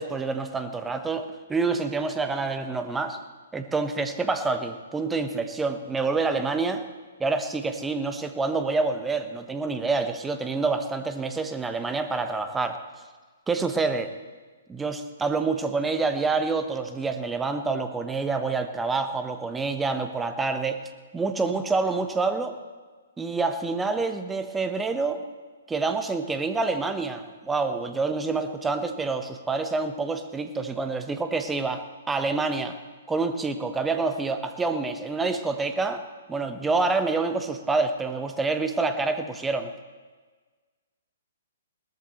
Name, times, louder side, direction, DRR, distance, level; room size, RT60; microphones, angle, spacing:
voice 1, 0.0-3.2 3.5-6.8 7.2-12.8 13.5-14.1 14.7-20.8 21.1-22.6 23.2-25.2 25.7-32.8 33.1-36.0 36.3-39.7, right 3 dB, 10° right, 8 dB, 1.1 m, -27 dB
21.0 x 18.5 x 3.1 m, 1.4 s
figure-of-eight pair, 125°, 0 cm